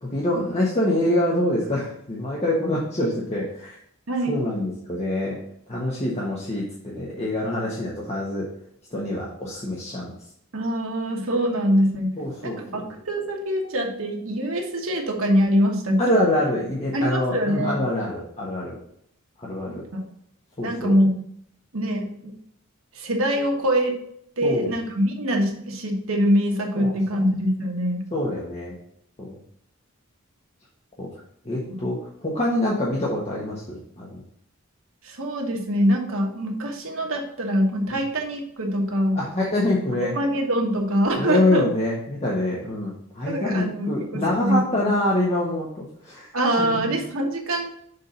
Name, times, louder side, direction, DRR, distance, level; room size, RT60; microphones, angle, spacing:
voice 1, 0.0-3.8 4.3-5.4 5.7-8.5 8.9-10.1 12.2-12.9 16.0-18.8 19.4-19.8 20.6-21.0 24.4-24.8 26.7-27.0 28.1-28.7 29.2-29.4 31.0-31.1 31.4-34.2 37.9-38.0 39.1-40.1 41.2-46.3 46.6-47.0, left 1 dB, 30° left, -5 dB, 1.2 m, -25 dB
voice 2, 4.1-4.5 10.5-12.1 12.4-16.0 16.9-17.8 19.9-20.0 20.6-21.2 21.7-22.3 22.9-24.0 24.4-28.0 31.7-31.9 35.0-39.2 40.0-41.6 43.3-44.6 46.3-47.7, equal, 75° right, 2 dB, 1.4 m, -24 dB
6.7 x 3.7 x 5.6 m, 0.68 s
head